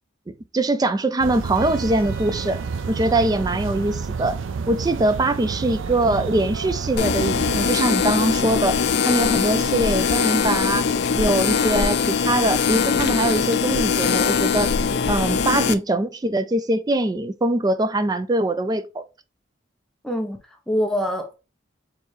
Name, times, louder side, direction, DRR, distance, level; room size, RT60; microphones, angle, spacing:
voice 1, 0.5-2.6 2.9-4.4 4.7-8.8 9.1-10.9 11.1-14.7 15.1-19.0, right 1 dB, 20° right, 0.3 m, -22 dB
sound 1, 1.2-7.7, right 5 dB, 90° right, 0.4 m, -30 dB
Trumpet, 1.5-6.6, right 3 dB, 65° right, 2.2 m, -48 dB
sound 2, 7.0-15.7, left 6 dB, 60° left, 0.4 m, -21 dB
voice 2, 15.4-15.8 20.0-20.4 20.7-21.3, equal, 5° left, 0.8 m, -25 dB
4.5 x 3.4 x 3.1 m
head